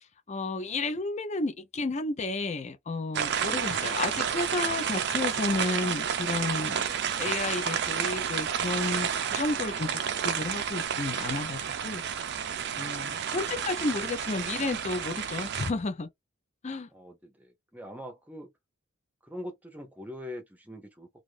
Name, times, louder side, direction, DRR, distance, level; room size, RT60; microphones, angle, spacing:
voice 1, 0.3-6.9 7.2-12.0 12.8-16.1 16.6-16.9, left 3 dB, 30° left, 0.5 m, -32 dB
sound 1, 3.1-15.7, right 8 dB, 50° right, 0.4 m, -31 dB
voice 2, 16.9-18.5 19.2-21.1, left 1 dB, 5° right, 0.6 m, -43 dB
2.5 x 2.5 x 3.2 m
head